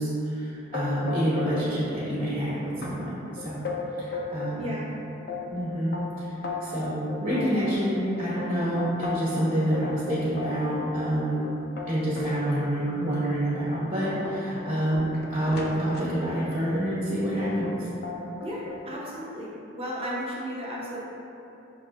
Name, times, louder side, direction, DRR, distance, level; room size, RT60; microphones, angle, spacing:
voice 1, 0.0-3.6 4.0-4.7 5.5-5.9 6.6-11.4 11.9-17.7, right 1 dB, 50° right, -11 dB, 1.0 m, -27 dB
sound 1, 0.7-1.7 1.9-2.5 2.8-2.9 3.4-4.6 5.0-9.4 9.7-12.3 12.9-13.0 13.5-16.6 17.4-17.8 18.0-18.8, left 4 dB, 55° left, 0.4 m, -35 dB
voice 2, 4.6-4.9 18.4-21.0, equal, 30° right, -5 dB, 0.7 m, -34 dB
6.1 x 2.6 x 2.2 m, 2.9 s
head